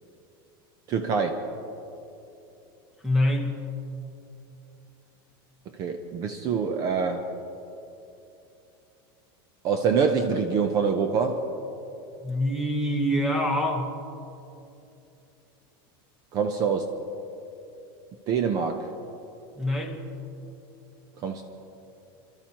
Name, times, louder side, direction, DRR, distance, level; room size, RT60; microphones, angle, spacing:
voice 1, 0.9-1.4 5.7-7.2 9.6-11.4 16.3-16.9 18.3-18.9 21.2-21.4, right 6 dB, 30° right, 6 dB, 0.6 m, -25 dB
voice 2, 3.0-3.7 12.2-13.9 19.5-20.0, left 1 dB, 5° right, 3 dB, 1.1 m, -25 dB
27.5 x 12.5 x 2.9 m, 2.8 s
supercardioid pair, 170°, 13 cm